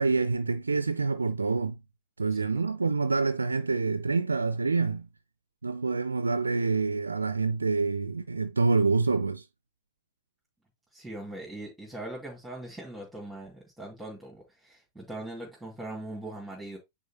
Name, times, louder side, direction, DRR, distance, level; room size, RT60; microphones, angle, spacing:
voice 1, 0.0-1.8 2.2-5.1 5.6-9.5, right 4 dB, 80° right, 0.3 m, -27 dB
voice 2, 10.9-16.8, right 1 dB, 5° right, 2.4 m, -41 dB
9.2 x 4.2 x 2.9 m
figure-of-eight pair, 90°, 0 cm